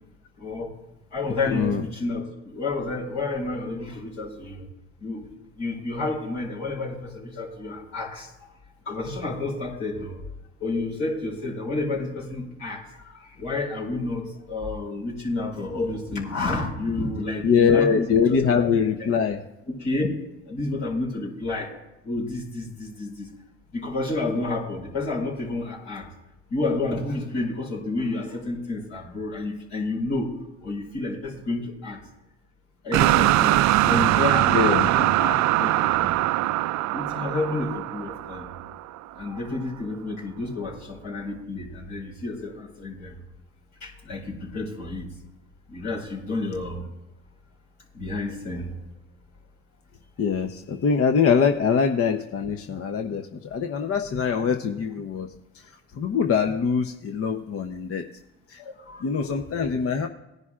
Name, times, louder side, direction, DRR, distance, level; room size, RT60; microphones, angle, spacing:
voice 1, 0.4-0.7 1.1-4.6 5.0-5.3 5.6-8.5 8.8-10.2 10.6-18.4 18.7-19.1 19.7-20.1 20.4-21.7 22.0-23.3 23.7-26.1 26.5-30.3 30.6-32.0 32.8-36.2 36.9-38.5 39.1-43.2 43.8-45.1 45.7-46.8 47.9-48.8 58.6-59.1, left 2 dB, 70° left, -2 dB, 4.8 m, -30 dB
voice 2, 1.5-1.8 17.4-19.4 34.5-34.9 50.2-55.3 55.5-55.6 55.9-58.1 58.5-58.6 59.0-60.1, left 6 dB, 45° left, 5 dB, 0.8 m, -23 dB
sound 1, 32.9-39.0, right 16 dB, 60° right, 0.5 m, -22 dB
19.0 x 10.5 x 2.5 m, 0.98 s
supercardioid pair, 70°, 33 cm